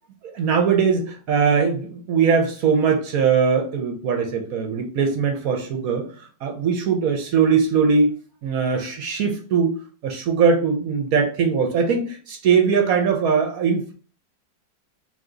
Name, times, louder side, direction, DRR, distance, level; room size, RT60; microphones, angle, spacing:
voice 1, 0.3-6.0 6.4-8.1 8.4-9.8 10.0-13.9, right 6 dB, 65° right, 4 dB, 0.9 m, -20 dB
4.2 x 2.8 x 3.8 m, 0.40 s
omnidirectional pair, 2.1 m